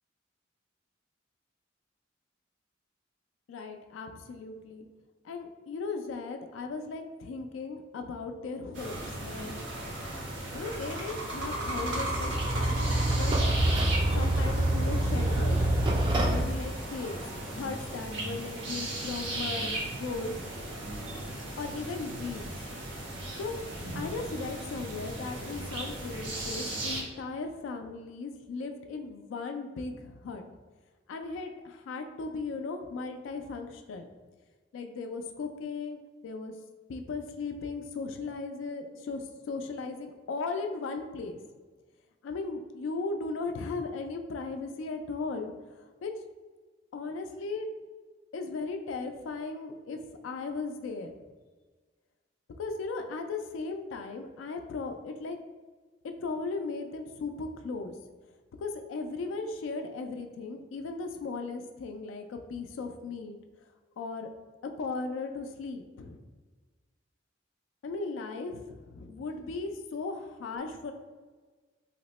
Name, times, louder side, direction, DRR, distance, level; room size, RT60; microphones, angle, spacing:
voice 1, 3.5-4.9 5.2-9.6 10.5-12.7 13.2-13.3 14.1-15.6 16.1-20.3 21.6-22.5 23.4-23.5 23.9-30.4 31.1-34.1 34.7-36.5 36.9-41.4 42.2-46.1 46.9-47.7 48.3-51.1 52.6-55.4 56.0-57.9 58.6-63.4 64.0-64.3 64.6-66.2 67.8-70.9, left 3 dB, 90° left, 5 dB, 0.3 m, -37 dB
sound 1, 8.7-27.0, right 1 dB, 70° right, 0.7 m, -36 dB
sound 2, 11.3-16.4, right 1 dB, 25° right, 0.3 m, -27 dB
2.8 x 2.0 x 4.0 m, 1.4 s
head